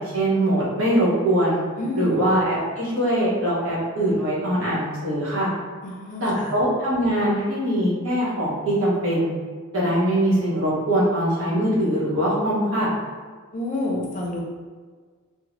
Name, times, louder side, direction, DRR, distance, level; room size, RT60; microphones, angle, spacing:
voice 1, 0.0-1.6 1.9-5.5 6.2-9.3 9.7-12.9, right 1 dB, 60° right, -7 dB, 1.1 m, -22 dB
voice 2, 1.8-2.2 5.8-6.5 13.5-14.4, left 2 dB, 35° left, -2 dB, 0.5 m, -28 dB
3.5 x 2.1 x 3.1 m, 1.5 s
head